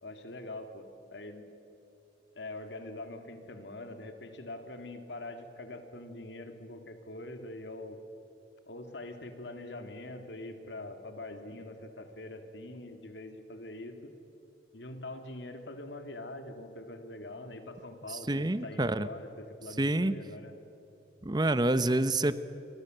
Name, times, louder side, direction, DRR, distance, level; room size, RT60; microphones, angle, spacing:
voice 1, 0.0-1.4 2.3-8.0 8.7-14.1 14.7-20.5, left 2 dB, 90° left, 7 dB, 2.7 m, -44 dB
voice 2, 18.1-19.1 19.8-20.1 21.2-22.4, right 2 dB, 25° right, 14 dB, 0.8 m, -27 dB
28.5 x 23.0 x 8.0 m, 3.0 s
head